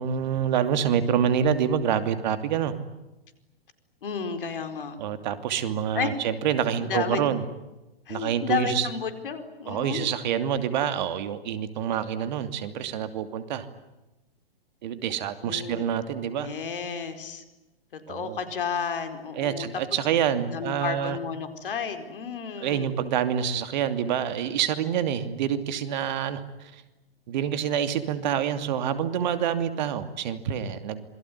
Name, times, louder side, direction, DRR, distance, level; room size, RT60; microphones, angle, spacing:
voice 1, 0.0-2.7 5.0-7.4 8.1-8.9 9.7-13.7 14.8-16.5 18.1-18.4 19.4-21.2 22.6-26.8 27.3-31.0, right 8 dB, 50° right, 11 dB, 2.8 m, -27 dB
voice 2, 4.0-5.0 5.9-6.1 6.8-7.2 8.1-10.1 15.4-15.8 16.3-17.4 17.9-19.7 20.5-22.9, left 6 dB, 65° left, 9 dB, 4.7 m, -32 dB
27.0 x 22.5 x 9.7 m, 1.0 s
figure-of-eight pair, 115°, 29 cm